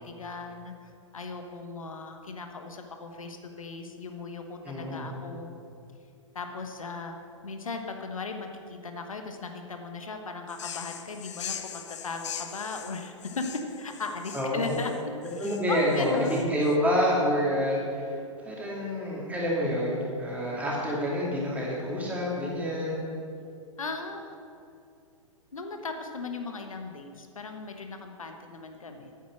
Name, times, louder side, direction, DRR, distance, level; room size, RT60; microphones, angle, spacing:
voice 1, 0.0-5.5 6.3-7.2 7.4-13.5 13.8-15.1 15.4-16.5 23.8-24.4 25.5-29.1, left 4 dB, 80° left, 5 dB, 1.2 m, -37 dB
voice 2, 4.6-5.1 14.3-14.7 15.4-18.2 18.4-23.0, equal, 10° right, -4 dB, 2.7 m, -27 dB
sound 1, 10.5-16.8, left 9 dB, 60° left, 0.7 m, -41 dB
9.5 x 8.2 x 6.5 m, 2.5 s
figure-of-eight pair, 115°, 17 cm